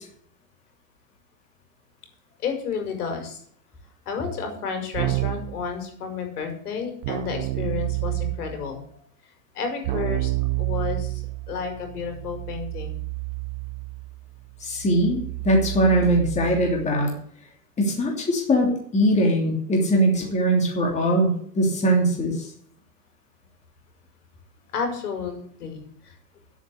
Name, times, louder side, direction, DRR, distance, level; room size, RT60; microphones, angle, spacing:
voice 1, 2.4-3.4 4.1-8.8 9.5-10.3 10.6-13.0 24.7-26.1, left 6 dB, 70° left, 5 dB, 5.5 m, -31 dB
Keyboard (musical), 4.9-5.6 7.0-8.6 9.8-16.9, right 20 dB, 35° right, 0.6 m, -30 dB
voice 2, 14.6-17.1 17.8-21.3 21.5-22.5, right 1 dB, 15° left, 0 dB, 3.0 m, -21 dB
10.5 x 8.3 x 8.5 m, 0.62 s
hypercardioid pair, 140°, 47 cm